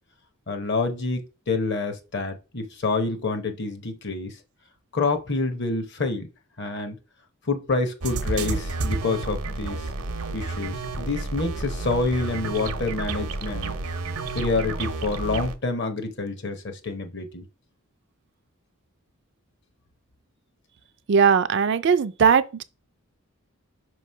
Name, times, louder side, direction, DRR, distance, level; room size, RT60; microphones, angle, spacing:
voice 1, 0.5-1.2 1.5-4.3 4.9-6.3 6.6-7.0 7.5-9.9 10.3-13.7 14.3-17.4, left 3 dB, 50° left, 0.9 m, -27 dB
sound 1, 8.0-15.6, right 3 dB, 75° right, 0.7 m, -30 dB
voice 2, 21.1-22.6, right 6 dB, 50° right, 0.4 m, -19 dB
5.6 x 3.1 x 5.4 m
head